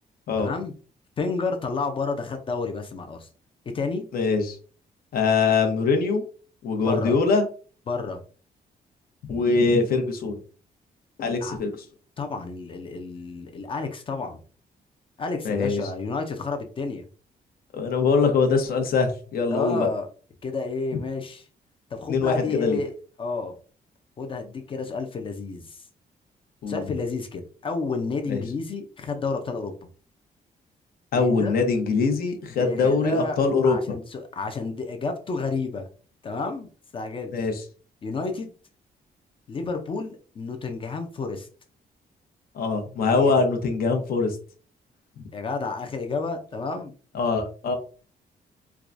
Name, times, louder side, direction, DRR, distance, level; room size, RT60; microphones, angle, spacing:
voice 1, 0.4-0.7 1.2-3.3 3.7-4.0 6.9-7.2 7.9-8.2 11.4-11.6 12.2-14.4 15.2-17.1 19.5-20.1 20.4-21.4 21.9-22.9 23.2-23.5 24.2-25.8 26.7-29.7 31.1-31.6 32.6-35.9 36.2-37.3 38.0-38.5 39.5-41.5 43.1-43.5 45.3-47.0, left 4 dB, 35° left, 5 dB, 0.5 m, -30 dB
voice 2, 4.1-4.6 5.1-6.2 6.6-7.5 9.3-10.4 11.2-11.7 15.4-15.8 17.7-19.9 22.1-22.8 26.6-26.9 28.3-28.4 31.1-33.8 37.3-37.6 42.5-44.4 47.1-47.8, left 4 dB, 70° left, 5 dB, 0.9 m, -23 dB
4.6 x 2.2 x 2.5 m, 0.39 s
wide cardioid pair, 175°, 16 cm